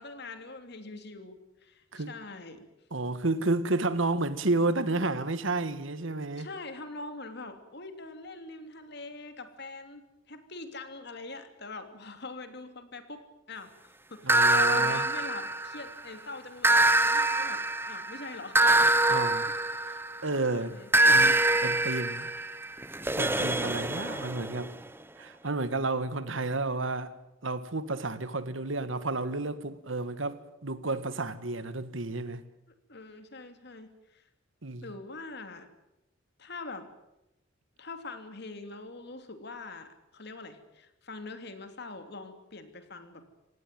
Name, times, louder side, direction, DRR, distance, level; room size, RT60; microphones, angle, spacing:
voice 1, 0.0-2.7 6.4-10.0 10.3-20.0 20.5-20.9 32.9-34.2 34.8-35.7 36.4-36.9 37.8-43.2, left 3 dB, 60° left, 2.9 m, -44 dB
voice 2, 2.9-6.5 14.2-15.1 19.1-19.5 19.8-20.8 21.1-22.3 23.1-24.7 25.2-27.1 27.4-32.4 34.6-34.9, right 2 dB, 80° right, 1.8 m, -31 dB
sound 1, 14.3-16.0 16.6-20.3 20.9-24.7, right 2 dB, 10° right, 1.1 m, -25 dB
26.5 x 18.0 x 9.2 m
head